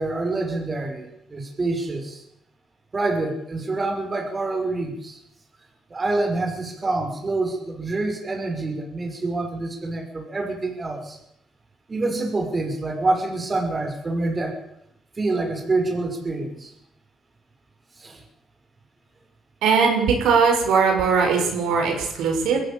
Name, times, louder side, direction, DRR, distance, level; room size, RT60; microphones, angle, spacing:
voice 1, 0.0-2.2 2.9-5.2 5.9-11.2 11.9-14.6 15.2-16.7 18.0-18.2, right 2 dB, 30° right, 3 dB, 5.7 m, -26 dB
voice 2, 19.6-22.6, right 5 dB, 85° right, 3 dB, 6.3 m, -20 dB
22.5 x 14.5 x 8.9 m, 0.77 s
cardioid pair, 90°, 0 cm